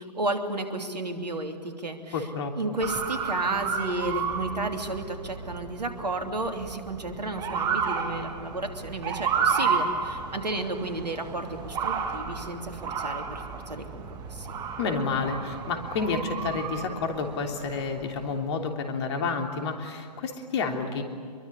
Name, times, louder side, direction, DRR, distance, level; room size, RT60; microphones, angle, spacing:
voice 1, 0.1-2.3 2.5-14.5, right 2 dB, 75° right, 5 dB, 3.0 m, -32 dB
voice 2, 2.1-2.5 14.8-21.0, left 4 dB, 40° left, 4 dB, 3.3 m, -30 dB
Motor vehicle (road) / Siren, 2.8-18.4, right 6 dB, 20° right, 2.0 m, -32 dB
25.5 x 23.0 x 9.9 m, 2.2 s
figure-of-eight pair, 125°, 21 cm